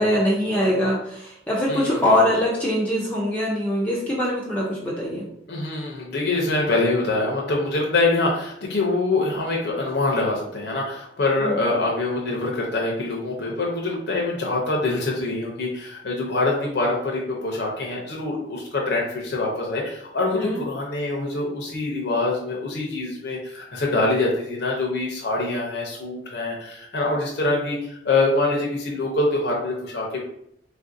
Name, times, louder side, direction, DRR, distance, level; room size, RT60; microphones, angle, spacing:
voice 1, 0.0-5.3 11.4-11.7 20.3-20.6, left 1 dB, 10° left, -5 dB, 0.4 m, -23 dB
voice 2, 1.7-2.1 5.5-30.2, left 2 dB, 65° left, -2 dB, 0.6 m, -24 dB
3.4 x 2.5 x 2.5 m, 0.74 s
head